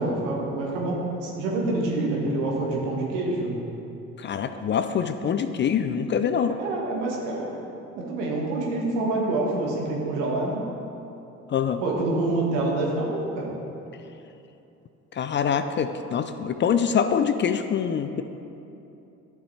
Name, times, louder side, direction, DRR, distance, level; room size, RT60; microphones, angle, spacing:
voice 1, 0.0-3.5 6.5-7.6 7.9-10.7 11.8-13.5, right 2 dB, 80° right, -2 dB, 1.5 m, -27 dB
voice 2, 4.2-6.6 11.5-11.8 15.1-18.2, left 7 dB, 30° left, 9 dB, 0.4 m, -25 dB
10.5 x 6.8 x 3.3 m, 2.9 s
hypercardioid pair, 60°, 37 cm